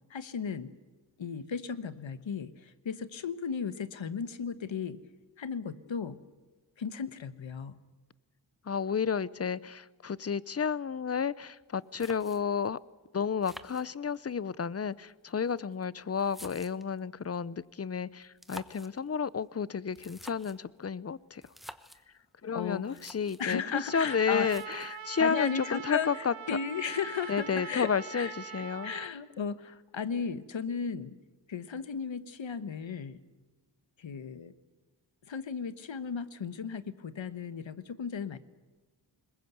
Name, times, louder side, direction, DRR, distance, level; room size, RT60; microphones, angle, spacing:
voice 1, 0.1-0.7 1.2-5.0 5.4-6.2 6.8-7.7 22.5-23.0 23.4-24.5 25.2-31.2 31.5-33.2 34.0-34.5 35.3-38.4, left 6 dB, 75° left, 13 dB, 1.2 m, -35 dB
voice 2, 8.7-12.8 13.1-21.4 22.4-26.3 27.3-28.9, left 6 dB, 35° left, 20 dB, 0.6 m, -31 dB
sound 1, 11.6-11.7 12.0-12.7 13.4-14.4 15.3-17.0 18.2-19.0 19.9-20.7 21.4-22.0 22.6-22.7 22.8-23.5 24.4-25.0, equal, ahead, 1.0 m, -49 dB
Trumpet, 23.9-29.1, right 7 dB, 90° right, 1.2 m, -43 dB
21.5 x 20.5 x 8.1 m, 1.3 s
wide cardioid pair, 75°, 46 cm